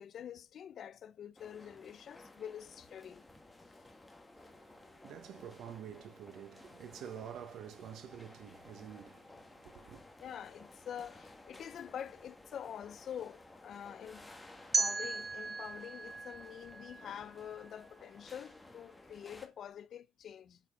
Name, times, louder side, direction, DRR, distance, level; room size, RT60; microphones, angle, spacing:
voice 1, 0.0-3.3 10.2-14.3 14.8-20.6, left 9 dB, 60° left, 0.5 m, -46 dB
sound 1, 1.4-19.5, left 2 dB, 10° left, 1.5 m, -56 dB
voice 2, 4.3-10.0, right 9 dB, 85° right, 1.2 m, -49 dB
sound 2, 14.7-17.7, right 3 dB, 25° right, 0.4 m, -36 dB
9.1 x 5.1 x 3.6 m
cardioid pair, 135°, 0 cm